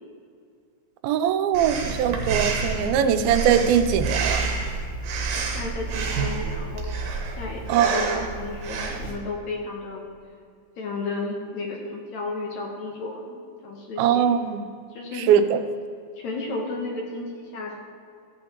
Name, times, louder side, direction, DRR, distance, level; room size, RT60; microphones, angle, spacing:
voice 1, 1.0-4.4 7.7-7.9 8.2-8.3 14.0-14.6 15.3-15.6, right 8 dB, 90° right, 9 dB, 2.4 m, -21 dB
Breathing, 1.5-9.2, right 4 dB, 65° right, 2.4 m, -28 dB
voice 2, 5.5-6.8 7.3-10.1 10.8-13.4 13.6-14.3 14.9-15.8 16.2-17.8, left 3 dB, 65° left, -1 dB, 1.9 m, -33 dB
14.5 x 8.6 x 2.9 m, 2.3 s
omnidirectional pair, 4.2 m